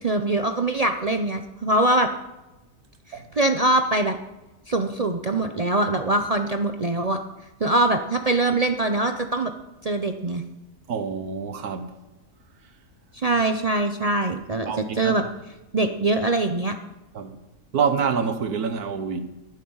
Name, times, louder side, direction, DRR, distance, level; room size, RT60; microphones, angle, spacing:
voice 1, 0.0-2.1 3.1-4.2 4.7-7.2 7.6-9.5 9.8-10.4 13.1-15.2 15.7-16.8, right 2 dB, 45° right, 0.4 m, -23 dB
voice 2, 10.9-12.0 14.7-15.2 17.1-17.3 17.7-19.2, right 6 dB, 75° right, 1.6 m, -26 dB
12.5 x 10.0 x 5.6 m
omnidirectional pair, 1.6 m